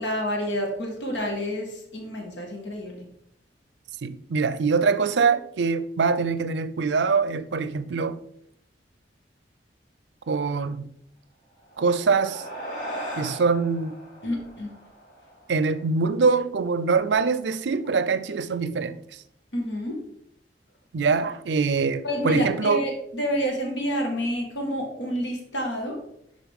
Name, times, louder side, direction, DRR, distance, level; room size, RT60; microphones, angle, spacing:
voice 1, 0.0-3.0 14.2-14.7 19.5-20.0 22.0-26.0, equal, 80° left, 1.6 m, -28 dB
voice 2, 4.0-8.2 10.3-10.8 11.8-12.4 13.2-14.0 15.5-19.0 20.9-22.8, right 4 dB, 75° right, 0.5 m, -24 dB
sound 1, 11.6-16.3, equal, 45° left, 2.6 m, -38 dB
11.0 x 4.0 x 3.5 m
head